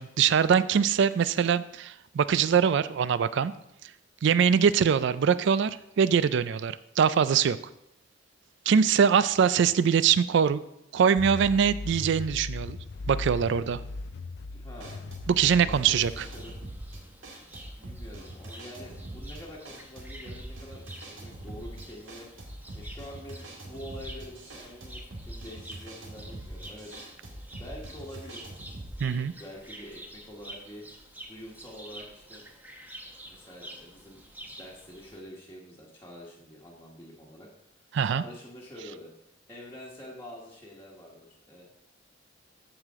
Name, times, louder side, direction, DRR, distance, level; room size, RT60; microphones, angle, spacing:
voice 1, 0.0-3.5 4.2-7.6 8.7-10.6 10.9-12.8 13.1-13.8 15.3-16.2 29.0-29.3 37.9-38.2, right 7 dB, 65° right, 16 dB, 0.4 m, -23 dB
sound 1, 11.2-17.0, left 3 dB, 65° left, 0.5 m, -38 dB
voice 2, 14.5-15.0 15.4-16.6 17.8-22.3 22.7-26.9 27.5-28.5 29.0-30.8 31.3-32.4 33.2-37.5 37.8-39.1 39.5-41.6, equal, 15° left, -5 dB, 1.4 m, -46 dB
sound 2, 14.8-29.0, right 1 dB, 90° right, 1.8 m, -43 dB
sound 3, 15.9-35.2, right 1 dB, 10° right, 0.9 m, -49 dB
14.0 x 5.0 x 3.6 m, 0.81 s
head